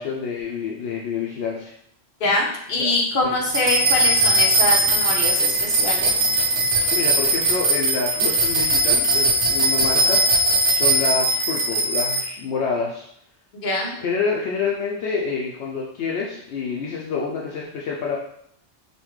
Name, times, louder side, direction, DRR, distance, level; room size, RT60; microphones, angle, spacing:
voice 1, 0.0-1.7 2.8-2.9 3.2-3.3 6.9-10.2 10.7-13.0 14.0-18.2, left 5 dB, 75° left, -2 dB, 0.8 m, -27 dB
voice 2, 2.2-6.1 13.5-13.9, left 2 dB, 55° left, -2 dB, 1.0 m, -24 dB
sound 1, 3.5-12.2, right 1 dB, 65° right, 1.0 m, -19 dB
5.5 x 2.2 x 3.1 m, 0.71 s
omnidirectional pair, 1.1 m